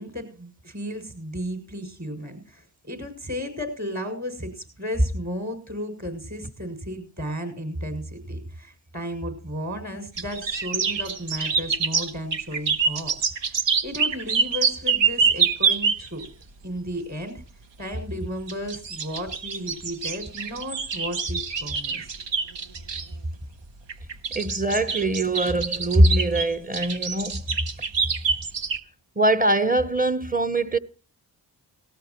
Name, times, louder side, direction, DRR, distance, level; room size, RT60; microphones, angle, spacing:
voice 1, 0.0-13.6 13.8-16.3 16.6-17.4 17.8-22.1, equal, 40° right, 6.8 m, -34 dB
sound 1, 10.2-16.3 18.5-23.1 23.9-28.8, right 5 dB, 85° right, 1.1 m, -26 dB
voice 2, 24.3-27.4 29.2-30.8, right 1 dB, 20° right, 0.9 m, -22 dB
18.0 x 17.5 x 3.0 m
cardioid pair, 55°, 43 cm